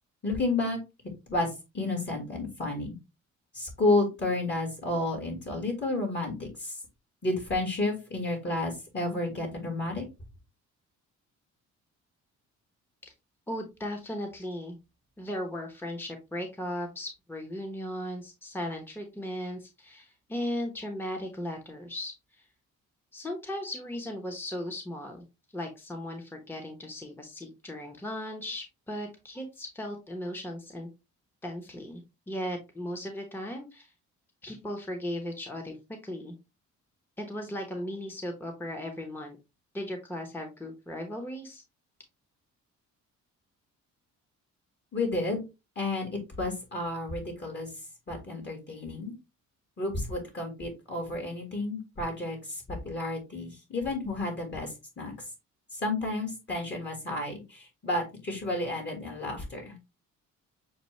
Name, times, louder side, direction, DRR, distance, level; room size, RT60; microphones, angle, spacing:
voice 1, 0.2-0.8 1.3-3.0 3.5-6.8 7.2-10.1 44.9-45.4 45.8-46.1 46.4-47.7 48.1-49.1 49.8-55.1 55.7-60.0, left 2 dB, 35° left, 2 dB, 1.8 m, -31 dB
voice 2, 13.5-14.8 15.2-22.4 23.1-25.2 25.5-30.9 31.4-33.9 34.4-35.8 36.0-36.3 37.2-39.4 39.7-41.6, left 1 dB, 5° left, 3 dB, 1.0 m, -37 dB
6.7 x 2.3 x 3.1 m, 0.26 s
cardioid pair, 90°, 30 cm